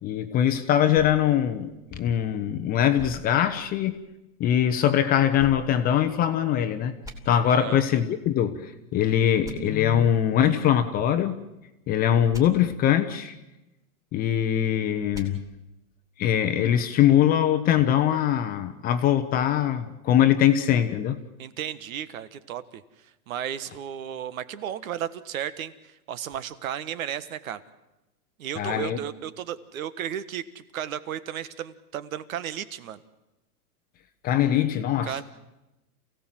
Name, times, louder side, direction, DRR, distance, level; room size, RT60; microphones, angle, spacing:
voice 1, 0.0-4.0 4.4-6.9 7.3-11.4 11.9-13.4 14.1-15.4 16.2-21.2 28.6-29.0 34.2-35.2, left 10 dB, 20° left, 9 dB, 0.9 m, -22 dB
sound 1, 0.9-2.4 3.0-4.2 5.4-6.5 7.0-7.1 9.4-9.5 12.3-12.4 15.1-15.3, right 2 dB, 5° right, 2.7 m, -45 dB
voice 2, 7.4-7.8 21.4-22.8 23.3-27.6 28.4-33.0 35.0-35.2, right 10 dB, 60° right, 14 dB, 1.6 m, -34 dB
28.0 x 16.5 x 7.6 m, 0.98 s
hypercardioid pair, 150°, 45 cm